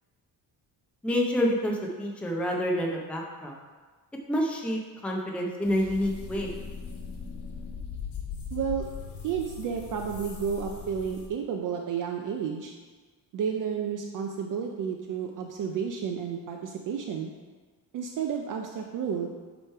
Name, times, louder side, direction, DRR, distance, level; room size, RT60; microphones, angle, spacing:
voice 1, 1.0-3.5 4.3-6.5, equal, 5° left, -1 dB, 0.5 m, -28 dB
sound 1, 5.7-11.3, left 6 dB, 90° left, 1.2 m, -39 dB
voice 2, 8.5-8.8 9.2-12.7 13.3-17.3 17.9-19.3, right 7 dB, 55° right, 3 dB, 0.5 m, -31 dB
7.6 x 3.2 x 4.5 m, 1.4 s
cardioid pair, 155°, 39 cm